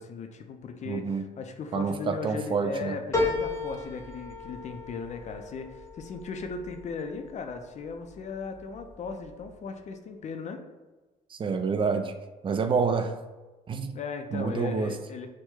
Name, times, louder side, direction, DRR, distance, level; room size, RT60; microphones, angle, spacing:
voice 1, 0.0-10.6 13.9-15.3, left 4 dB, 45° left, 6 dB, 0.5 m, -37 dB
voice 2, 0.9-1.2 1.7-3.0 11.3-12.1 12.4-13.2 13.7-13.9 14.3-15.0, right 5 dB, 30° right, 8 dB, 0.5 m, -28 dB
sound 1, 3.1-7.9 8.4-9.1 9.4-9.5, left 3 dB, 15° left, 0.9 m, -34 dB
6.0 x 2.2 x 3.7 m, 1.2 s
cardioid pair, 110°, 17 cm